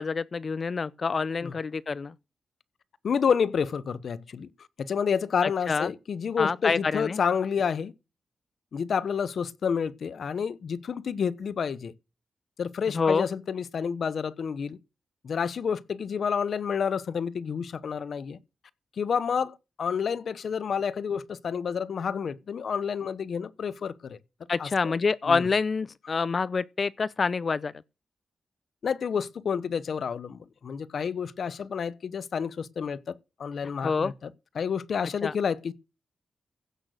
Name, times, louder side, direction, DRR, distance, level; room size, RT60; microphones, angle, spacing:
voice 1, 0.0-2.1 5.4-5.9 6.4-7.2 12.9-13.3 24.5-27.7 33.8-34.1 35.2-35.3, left 4 dB, 50° left, 0.5 m, -27 dB
voice 2, 3.0-4.5 4.8-7.9 8.7-11.9 12.6-14.8 15.2-18.4 19.0-24.2 24.6-24.9 25.3-25.5 28.8-33.1 33.4-35.7, left 6 dB, 75° left, 0.9 m, -29 dB
16.0 x 6.5 x 6.5 m
cardioid pair, 70°, 0 cm